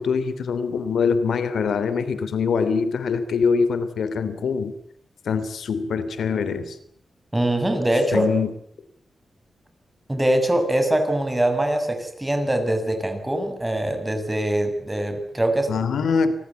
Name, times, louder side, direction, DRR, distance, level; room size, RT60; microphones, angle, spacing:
voice 1, 0.0-4.8 5.2-6.8 8.1-8.5 15.7-16.3, left 5 dB, 85° left, 13 dB, 3.1 m, -23 dB
voice 2, 7.3-8.3 10.1-15.7, right 1 dB, 10° right, 6 dB, 6.8 m, -23 dB
29.0 x 20.0 x 8.4 m, 0.67 s
wide cardioid pair, 95°, 0 cm